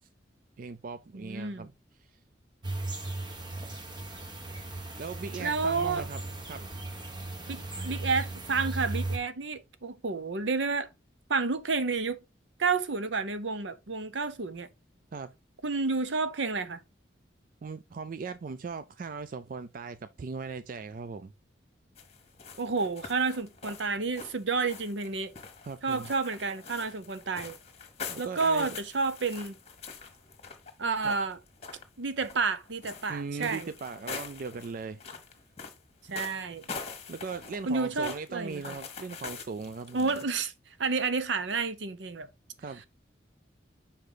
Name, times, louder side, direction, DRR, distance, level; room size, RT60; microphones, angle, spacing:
voice 1, 0.6-1.7 2.0-2.2 5.0-6.6 15.1-15.3 17.6-21.3 25.7-26.1 28.1-28.8 31.0-31.1 33.1-35.0 36.8-40.1 42.6-42.8, right 4 dB, 45° right, 0.4 m, -39 dB
voice 2, 1.1-1.7 5.4-6.0 7.5-10.9 11.3-12.2 12.6-14.7 15.6-16.8 22.6-25.3 25.8-27.6 28.2-29.5 30.8-31.4 32.0-33.7 36.1-36.6 37.7-38.6 39.9-40.5 40.8-42.3, right 4 dB, 75° right, 0.8 m, -30 dB
sound 1, 2.6-9.2, right 2 dB, 25° right, 1.2 m, -37 dB
sound 2, 22.0-40.2, left 5 dB, 35° left, 1.3 m, -44 dB
5.7 x 5.0 x 3.9 m
head